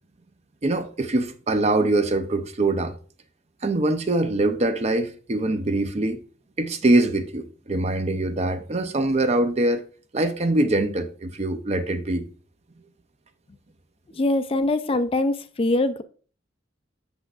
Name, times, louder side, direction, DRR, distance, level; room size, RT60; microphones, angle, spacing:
voice 1, 0.6-3.0 3.6-6.2 6.6-9.8 10.1-12.2, right 2 dB, 35° right, 0.6 m, -23 dB
voice 2, 14.2-16.0, left 2 dB, 30° left, 0.4 m, -23 dB
8.0 x 6.8 x 2.4 m
head